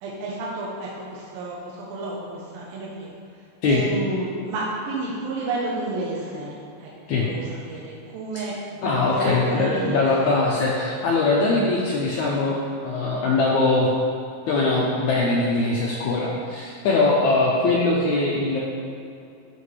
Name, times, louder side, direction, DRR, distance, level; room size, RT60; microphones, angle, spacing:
voice 1, 0.0-3.1 3.7-6.5 6.8-6.9 7.2-8.8 9.1-10.3, right 2 dB, 75° right, -5 dB, 2.7 m, -31 dB
voice 2, 8.8-13.9 14.5-18.6, left 3 dB, 85° left, -4 dB, 1.7 m, -21 dB
13.0 x 5.2 x 3.3 m, 2.6 s
omnidirectional pair, 4.3 m